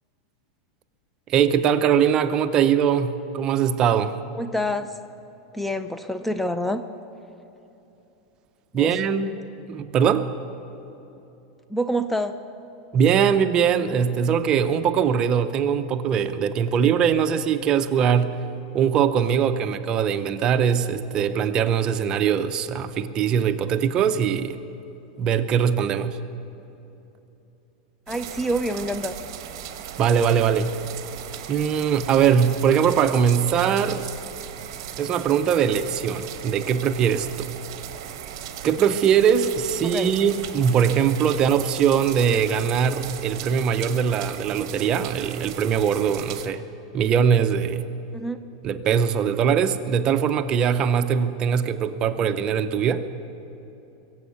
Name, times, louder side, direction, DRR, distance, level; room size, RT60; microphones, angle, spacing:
voice 1, 1.3-4.2 8.7-9.4 9.7-10.3 12.9-18.4 18.7-24.6 25.2-26.2 30.0-30.8 31.5-34.1 35.0-37.5 38.6-46.6 46.9-47.9 48.6-53.1, right 7 dB, 35° right, 9 dB, 0.7 m, -21 dB
voice 2, 4.3-4.9 5.5-6.8 8.7-8.9 11.7-12.4 28.1-29.2 39.8-40.1 48.1-48.4, equal, 5° left, 9 dB, 0.5 m, -27 dB
sound 1, 28.1-46.5, right 10 dB, 60° right, 1.2 m, -37 dB
22.5 x 7.9 x 7.1 m, 2.9 s
supercardioid pair, 135°, 2 cm